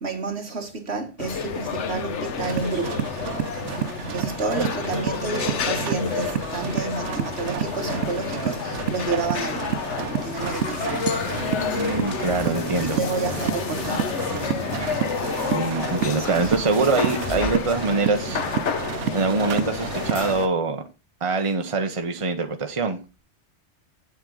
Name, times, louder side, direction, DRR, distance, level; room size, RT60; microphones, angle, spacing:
voice 1, 0.0-3.1 4.1-9.8 10.2-11.1 12.8-14.5 15.4-16.5 16.8-16.9, right 3 dB, 65° right, 1.8 m, -30 dB
sound 1, 1.2-20.5, left 6 dB, 80° left, 1.2 m, -30 dB
sound 2, 2.4-20.3, right 10 dB, 85° right, 1.0 m, -30 dB
sound 3, 10.4-17.9, left 2 dB, 40° left, 1.9 m, -35 dB
voice 2, 11.8-13.0 15.5-18.4 19.1-20.8 21.2-23.0, right 3 dB, 30° right, 1.0 m, -24 dB
8.2 x 7.6 x 3.9 m
omnidirectional pair, 1.2 m